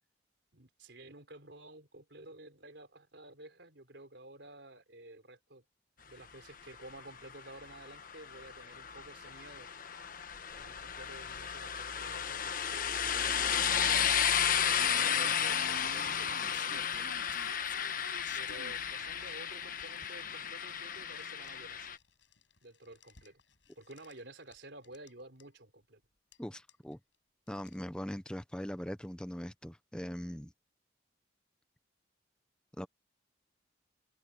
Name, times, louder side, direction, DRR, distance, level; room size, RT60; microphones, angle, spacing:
voice 1, 0.5-5.6 6.1-9.7 10.5-14.1 15.0-17.1 18.3-21.9 22.6-23.4 23.8-26.0, right 2 dB, 70° right, 3.9 m, -52 dB
sound 1, 7.0-22.0, left 8 dB, 50° left, 1.2 m, -33 dB
sound 2, 14.6-19.3 19.8-21.6 21.8-22.6 22.8-24.2 24.5-24.6 24.8-25.1 25.4-25.5 26.3-26.4 26.7-26.9 27.5-27.8, left 3 dB, 90° left, 7.6 m, -51 dB
voice 2, 26.4-27.0 27.5-30.5 32.8-32.9, equal, 5° left, 0.6 m, -41 dB
head